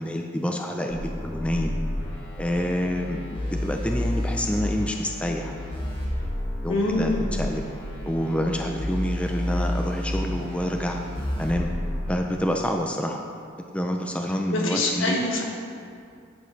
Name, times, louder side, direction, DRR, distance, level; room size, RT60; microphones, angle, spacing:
voice 1, 0.0-1.7 2.4-5.5 6.6-7.1 7.4-7.6 8.0-11.0 11.4-11.7 12.1-13.2 13.7-15.2, equal, 5° left, 2 dB, 0.4 m, -27 dB
sound 1, 0.9-12.3, left 1 dB, 25° left, 1.5 m, -30 dB
voice 2, 6.7-7.3 14.5-15.4, left 2 dB, 85° left, -1 dB, 1.5 m, -24 dB
9.3 x 9.3 x 3.2 m, 2.4 s
head